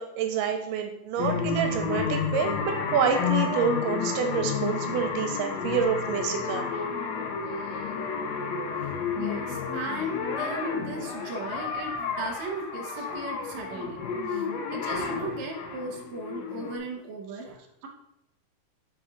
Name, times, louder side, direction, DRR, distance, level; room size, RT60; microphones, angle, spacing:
voice 1, 0.0-6.6, right 7 dB, 80° right, 5 dB, 2.2 m, -28 dB
sound 1, 1.2-16.8, left 5 dB, 80° left, 1.6 m, -31 dB
voice 2, 8.8-14.0 14.3-17.9, right 2 dB, 65° right, 1 dB, 1.9 m, -37 dB
6.1 x 4.9 x 3.8 m, 0.84 s
omnidirectional pair, 4.0 m